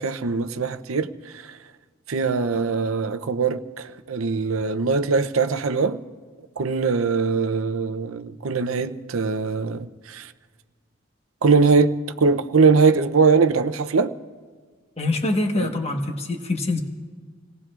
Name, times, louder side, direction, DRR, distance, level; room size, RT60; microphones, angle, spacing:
voice 1, 0.0-1.6 2.1-6.0 6.6-10.3 11.4-14.1 15.6-15.7, right 4 dB, 85° right, 0.7 m, -21 dB
voice 2, 15.0-16.8, left 2 dB, 30° left, 1.3 m, -24 dB
28.0 x 18.5 x 2.5 m
head